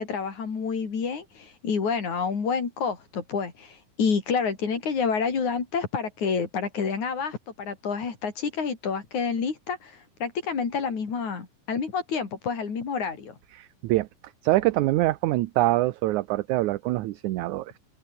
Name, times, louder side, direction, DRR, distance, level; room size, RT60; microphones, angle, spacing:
voice 1, 0.0-13.4, left 5 dB, 55° left, 5.3 m, -28 dB
voice 2, 13.6-14.1 14.4-17.8, right 17 dB, 75° right, 1.9 m, -24 dB
open air
omnidirectional pair, 4.0 m